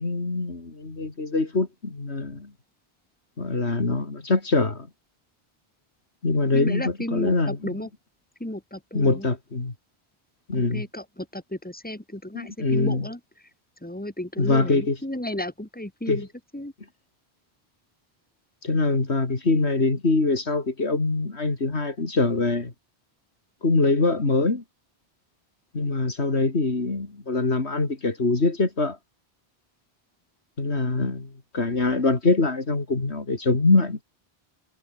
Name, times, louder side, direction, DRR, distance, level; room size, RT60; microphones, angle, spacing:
voice 1, 0.0-2.5 3.4-4.9 6.2-7.8 8.9-9.7 10.5-10.9 12.3-13.0 14.4-15.0 16.1-16.2 18.6-22.7 23.6-24.6 25.7-29.0 30.6-34.0, left 3 dB, 75° left, 3.3 m, -23 dB
voice 2, 6.5-7.9 8.4-9.3 10.5-13.2 13.8-16.3 16.5-16.7, left 1 dB, 10° left, 3.2 m, -33 dB
omnidirectional pair, 1.1 m